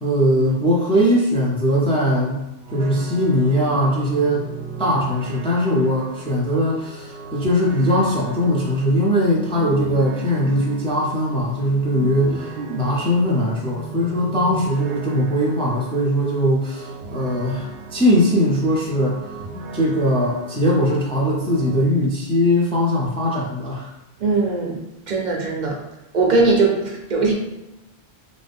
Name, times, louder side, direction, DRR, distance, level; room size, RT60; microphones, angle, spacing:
voice 1, 0.0-2.5 2.7-4.5 4.8-19.2 19.7-23.9, equal, 10° left, -4 dB, 0.4 m, -20 dB
sound 1, 2.6-21.8, right 4 dB, 80° right, 0.9 m, -36 dB
voice 2, 24.2-24.8 25.1-25.8 26.1-27.3, right 3 dB, 55° right, -1 dB, 0.6 m, -20 dB
2.6 x 2.5 x 3.4 m, 0.93 s
omnidirectional pair, 1.1 m